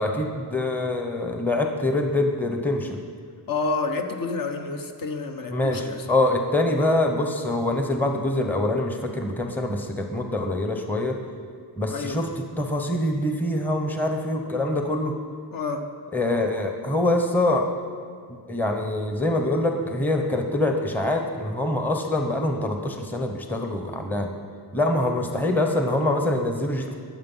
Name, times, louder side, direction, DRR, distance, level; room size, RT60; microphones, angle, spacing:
voice 1, 0.0-3.0 5.5-11.1 11.8-12.3 12.6-15.1 16.1-17.6 18.5-24.3 24.7-27.0, left 1 dB, 5° left, 4 dB, 0.9 m, -24 dB
voice 2, 3.5-6.1 11.9-12.2 15.5-15.9, left 3 dB, 50° left, 5 dB, 1.1 m, -29 dB
21.5 x 7.7 x 5.6 m, 2.2 s
wide cardioid pair, 180°, 45 cm